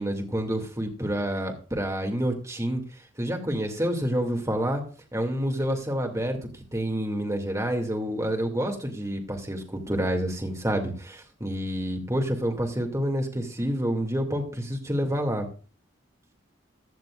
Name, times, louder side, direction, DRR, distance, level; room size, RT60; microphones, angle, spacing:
voice 1, 0.0-2.8 3.2-4.8 5.1-15.5, equal, 15° right, 2 dB, 2.4 m, -28 dB
16.0 x 11.0 x 2.5 m, 0.37 s
head